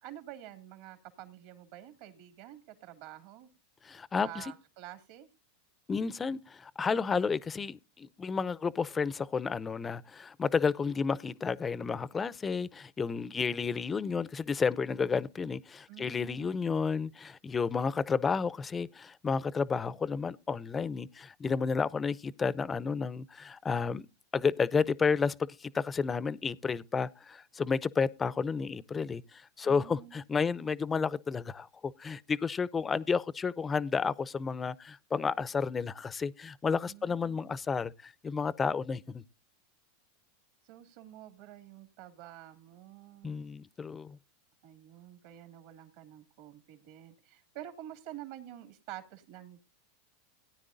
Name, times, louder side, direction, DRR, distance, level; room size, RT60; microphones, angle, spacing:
voice 1, 0.0-3.5 4.2-5.3 15.9-16.6 29.6-30.2 36.9-37.5 40.6-43.4 44.6-49.6, right 12 dB, 65° right, 2.5 m, -48 dB
voice 2, 3.8-4.4 5.9-24.1 24.3-25.3 25.6-39.2 43.2-44.2, left 5 dB, 20° left, 0.6 m, -31 dB
17.5 x 9.7 x 2.6 m
hypercardioid pair, 110°, 0 cm